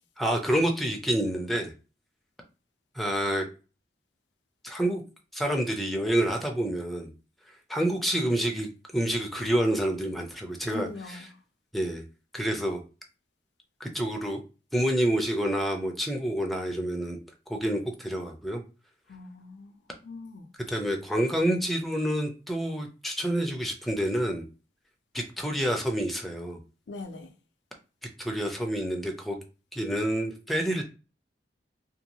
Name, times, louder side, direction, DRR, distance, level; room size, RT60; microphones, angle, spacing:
voice 1, 0.2-1.7 3.0-3.5 4.6-5.0 5.3-7.1 7.7-8.7 8.9-11.3 11.7-12.0 12.3-12.8 13.8-14.4 14.7-17.2 17.5-18.6 20.7-24.4 25.1-26.6 28.2-29.4 29.7-30.8, right 1 dB, ahead, 0.4 m, -28 dB
voice 2, 10.6-11.3 19.1-20.5 26.9-27.3, left 3 dB, 85° left, 0.5 m, -41 dB
2.6 x 2.2 x 2.9 m
head